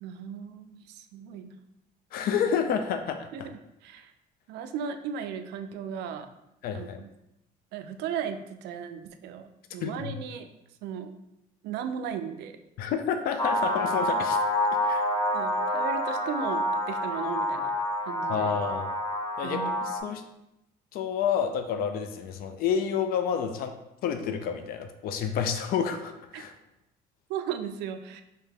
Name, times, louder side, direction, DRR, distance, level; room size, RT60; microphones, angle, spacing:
voice 1, 0.0-1.5 3.3-3.4 3.8-4.1 4.5-6.3 6.7-7.1 7.7-10.5 10.8-11.1 11.6-12.6 15.3-17.7 18.0-18.5 19.4-19.8 26.3-26.4 27.3-28.2, right 8 dB, 80° right, 8 dB, 0.4 m, -36 dB
voice 2, 2.1-3.5 6.6-7.0 9.8-10.1 12.8-14.4 14.8-15.3 18.3-18.9 19.4-20.2 20.9-23.7 24.0-26.5, left 7 dB, 65° left, 7 dB, 0.4 m, -29 dB
sound 1, 13.4-20.0, left 1 dB, 25° left, 0.6 m, -28 dB
3.3 x 2.8 x 3.4 m, 0.87 s
cardioid pair, 110°, 17 cm